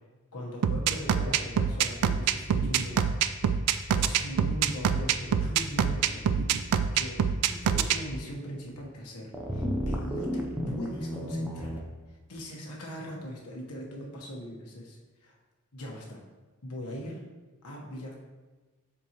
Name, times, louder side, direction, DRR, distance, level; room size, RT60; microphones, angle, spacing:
voice 1, 0.3-3.0 4.0-6.3 6.9-11.8 12.1-15.4 15.7-16.2 16.6-17.2 17.6-18.2, equal, 85° left, -2 dB, 1.1 m, -40 dB
sound 1, 0.6-8.0, right 8 dB, 90° right, 0.4 m, -25 dB
sound 2, 9.3-11.8, equal, 5° right, 0.5 m, -32 dB
7.2 x 4.4 x 2.9 m, 1.3 s
head